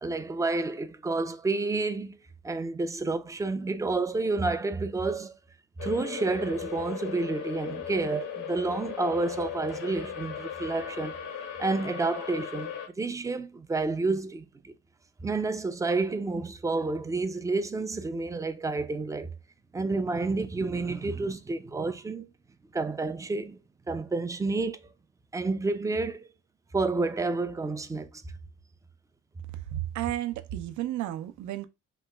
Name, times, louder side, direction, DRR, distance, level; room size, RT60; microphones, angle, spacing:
voice 1, 0.0-2.2 2.4-5.4 5.8-11.2 11.6-14.7 15.2-19.3 19.7-22.3 22.7-23.6 23.9-24.8 25.3-26.2 26.7-28.2, right 3 dB, 10° right, 0.3 m, -30 dB
sound 1, 5.8-12.9, left 7 dB, 85° left, 0.8 m, -37 dB
voice 2, 29.7-31.7, right 13 dB, 75° right, 0.5 m, -32 dB
3.0 x 2.2 x 3.3 m
cardioid pair, 90°, 30 cm